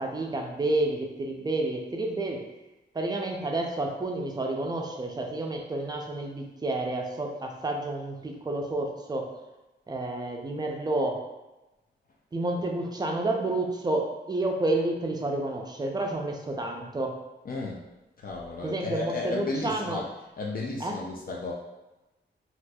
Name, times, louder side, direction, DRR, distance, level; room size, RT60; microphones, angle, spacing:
voice 1, 0.0-2.4 2.9-9.3 9.9-11.2 12.3-17.1 18.6-20.0 20.8-21.0, right 2 dB, 20° right, 1 dB, 0.4 m, -30 dB
voice 2, 17.5-17.8 18.2-20.1 20.4-21.5, left 3 dB, 50° left, -2 dB, 0.4 m, -33 dB
4.1 x 2.4 x 2.2 m, 1.0 s
wide cardioid pair, 170°, 19 cm